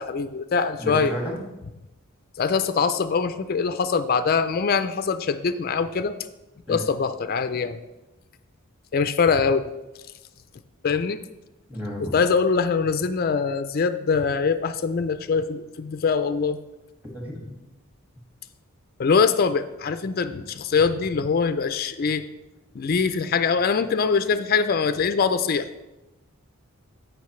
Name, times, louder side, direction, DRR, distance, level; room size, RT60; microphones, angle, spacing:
voice 1, 0.0-1.1 2.4-6.1 6.7-7.8 8.9-9.7 10.8-11.2 12.0-16.6 19.0-22.2 22.7-25.7, left 5 dB, 45° left, 11 dB, 0.4 m, -23 dB
voice 2, 0.8-1.4 6.7-6.9 11.7-12.2 17.1-17.5, equal, 10° right, -2 dB, 1.9 m, -32 dB
14.0 x 5.3 x 3.1 m, 0.99 s
head